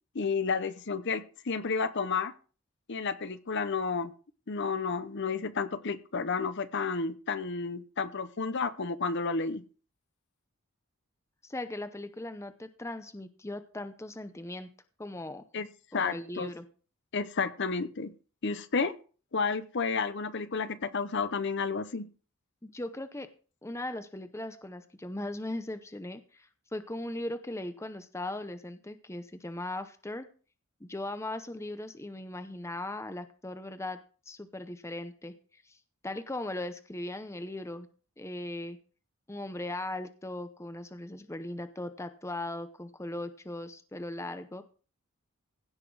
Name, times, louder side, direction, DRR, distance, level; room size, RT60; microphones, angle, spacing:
voice 1, 0.1-2.3 2.9-4.1 4.5-9.6 15.5-15.7 15.9-16.5 17.1-18.1 18.4-18.9 19.3-22.1, left 4 dB, 55° left, 13 dB, 0.7 m, -31 dB
voice 2, 11.4-14.7 15.0-15.4 15.9-16.7 22.6-23.3 23.6-30.3 30.8-34.0 34.3-35.8 36.0-37.9 38.2-38.8 39.3-44.6, left 1 dB, 15° left, 10 dB, 0.6 m, -38 dB
16.5 x 5.9 x 4.7 m, 0.38 s
head